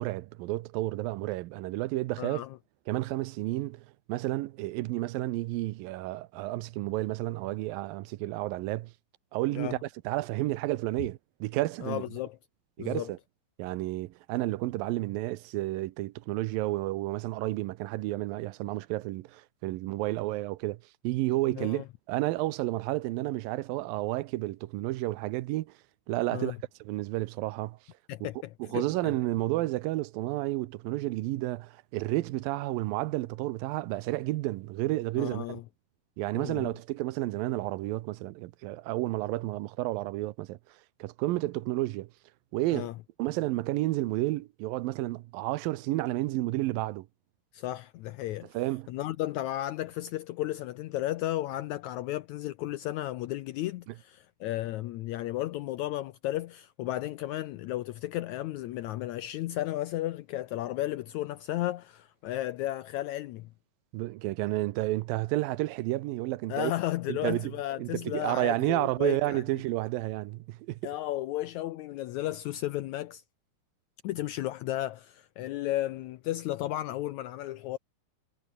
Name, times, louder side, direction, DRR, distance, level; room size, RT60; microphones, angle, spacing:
voice 1, 0.0-2.4 2.9-8.9 9.3-12.0 12.8-13.2 13.6-25.7 26.1-27.8 28.2-28.3 28.6-35.6 36.2-40.6 41.0-42.1 42.5-42.9 43.2-47.1 48.5-48.9 63.9-66.7 67.1-67.5 67.8-70.9, right 18 dB, 90° right, 2.5 m, -31 dB
voice 2, 2.2-2.6 9.5-9.8 11.8-12.4 12.8-13.1 21.6-21.8 26.3-26.6 28.1-29.1 35.2-35.6 36.3-36.7 42.7-42.9 47.5-48.5 48.9-63.5 66.5-69.4 70.8-73.2 74.0-77.8, left 15 dB, 80° left, 1.7 m, -34 dB
omnidirectional pair, 4.0 m